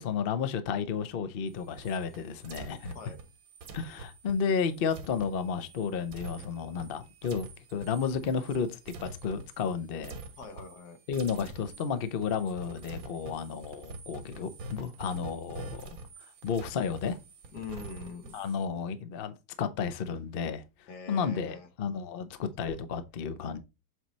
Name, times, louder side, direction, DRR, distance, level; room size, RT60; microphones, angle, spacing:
voice 1, 0.0-2.9 3.7-10.2 11.1-16.0 16.4-17.2 18.3-20.6 21.1-23.6, left 6 dB, 50° left, 0.7 m, -32 dB
sound 1, 1.5-9.7 10.0-10.9 11.1-18.7, right 3 dB, 60° right, 1.3 m, -46 dB
voice 2, 10.4-11.0 17.5-18.4 20.9-21.7, left 5 dB, 70° left, 1.6 m, -43 dB
7.9 x 3.1 x 4.1 m
omnidirectional pair, 1.9 m